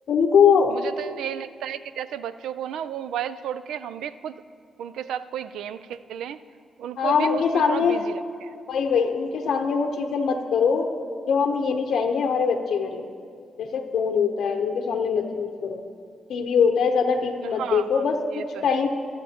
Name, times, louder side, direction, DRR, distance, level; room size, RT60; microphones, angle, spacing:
voice 1, 0.1-0.7 7.0-8.0 8.7-10.9 11.3-13.0 13.6-15.8 16.3-18.9, left 6 dB, 75° left, 3 dB, 0.7 m, -22 dB
voice 2, 0.7-4.4 4.8-6.4 6.8-8.5 17.4-18.0 18.3-18.8, right 9 dB, 85° right, 14 dB, 0.3 m, -33 dB
23.5 x 7.9 x 2.8 m, 2.3 s
supercardioid pair, 55°, 0 cm